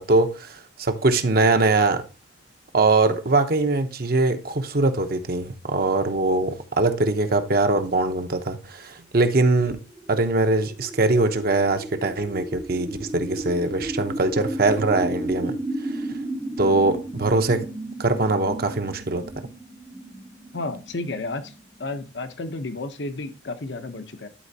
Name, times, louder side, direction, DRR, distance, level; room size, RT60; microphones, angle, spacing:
voice 1, 0.0-2.0 2.7-9.8 10.1-15.5 16.6-17.7 18.0-19.2, right 2 dB, 55° right, 0.9 m, -22 dB
sound 1, 10.0-22.1, right 1 dB, 10° right, 0.7 m, -33 dB
voice 2, 20.5-21.5 21.8-24.3, left 2 dB, 70° left, 0.9 m, -32 dB
11.5 x 4.4 x 2.8 m
head